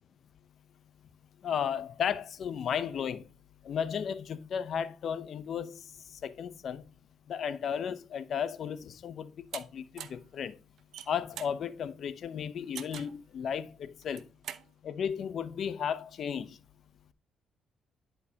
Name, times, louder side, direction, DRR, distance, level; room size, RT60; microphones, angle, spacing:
voice 1, 1.4-3.2 3.6-5.8 6.2-6.8 7.3-10.6 11.1-14.2 14.8-16.6, left 8 dB, 60° left, 0.6 m, -34 dB
sound 1, 9.5-9.6 10.0-10.3 10.8-11.6 12.8-13.2 14.0-14.7, right 9 dB, 75° right, 0.6 m, -42 dB
10.5 x 4.6 x 2.8 m
cardioid pair, 90°, 0 cm